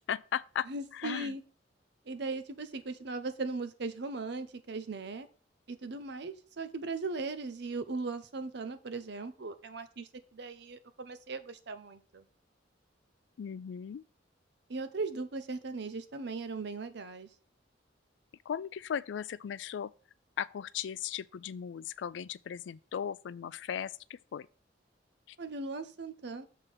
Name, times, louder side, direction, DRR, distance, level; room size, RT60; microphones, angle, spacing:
voice 1, 0.0-1.4 13.4-14.0 18.5-19.9 20.4-24.5 25.3-25.4, left 8 dB, 70° left, 0.3 m, -37 dB
voice 2, 0.7-1.4 2.1-5.3 5.7-12.2 14.7-17.3 25.4-26.5, right 3 dB, 65° right, 0.7 m, -38 dB
6.6 x 3.7 x 5.7 m
head